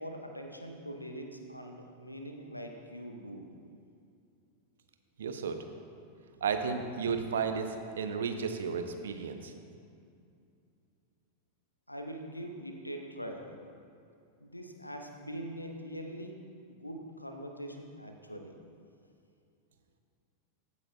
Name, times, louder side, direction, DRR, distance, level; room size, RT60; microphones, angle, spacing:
voice 1, 0.0-3.5 11.9-13.6 14.4-16.3 16.7-18.6, equal, 85° left, 4 dB, 0.8 m, -43 dB
voice 2, 5.2-5.6 6.4-9.5, right 6 dB, 65° right, 7 dB, 0.6 m, -33 dB
15.0 x 8.3 x 2.2 m, 2.5 s
figure-of-eight pair, 90°, 0 cm